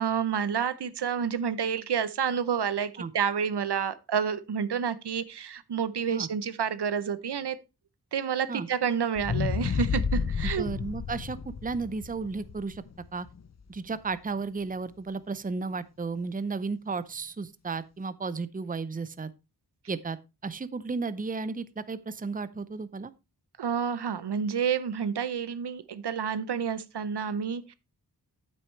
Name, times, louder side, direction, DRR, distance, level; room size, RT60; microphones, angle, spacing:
voice 1, 0.0-7.6 8.1-10.7 23.6-27.7, right 7 dB, 80° right, 0.7 m, -29 dB
sound 1, 9.1-13.4 13.9-14.0, left 6 dB, 40° left, 0.6 m, -31 dB
voice 2, 10.4-12.8 13.1-13.3 13.7-19.3 19.9-20.2 20.4-23.1, right 4 dB, 20° right, 0.6 m, -34 dB
8.7 x 8.5 x 3.2 m
wide cardioid pair, 65°, 40 cm